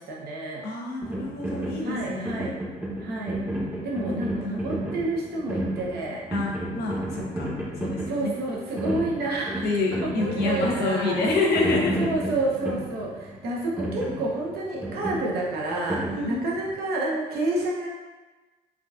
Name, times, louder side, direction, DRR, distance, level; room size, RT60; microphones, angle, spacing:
voice 1, 0.0-0.6 1.8-2.5 3.0-3.4 3.8-6.2 8.1-9.6 10.0-11.3 12.0-17.9, right 2 dB, 70° right, -3 dB, 0.8 m, -29 dB
voice 2, 0.6-2.5 4.1-4.7 6.3-8.3 9.6-11.9 16.1-16.5, left 3 dB, 75° left, -2 dB, 0.8 m, -28 dB
sound 1, 1.0-16.8, right 1 dB, 10° right, 0.8 m, -32 dB
3.7 x 2.3 x 2.5 m, 1.2 s
cardioid pair, 110°, 17 cm